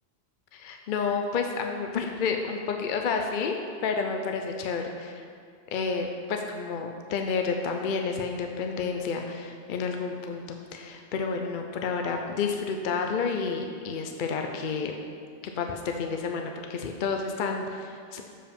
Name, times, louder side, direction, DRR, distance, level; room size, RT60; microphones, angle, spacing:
voice 1, 0.5-3.6 3.8-5.1 5.7-14.9 15.6-18.2, left 5 dB, 60° left, 3 dB, 0.6 m, -30 dB
7.3 x 4.8 x 5.2 m, 2.2 s
omnidirectional pair, 1.1 m